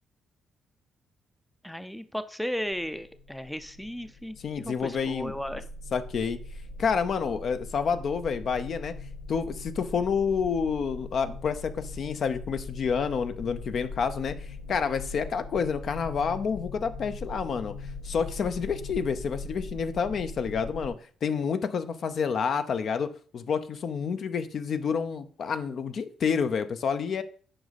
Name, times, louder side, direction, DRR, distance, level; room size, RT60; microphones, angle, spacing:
voice 1, 1.6-5.6, equal, 5° left, 12 dB, 0.5 m, -35 dB
sound 1, 2.7-20.9, left 2 dB, 80° left, 1.4 m, -41 dB
voice 2, 4.4-5.3 5.9-6.4 6.8-8.9 9.3-17.7 18.0-20.9 21.2-27.2, left 6 dB, 55° left, 10 dB, 0.6 m, -29 dB
7.8 x 5.2 x 4.1 m, 0.44 s
cardioid pair, 90°, 0 cm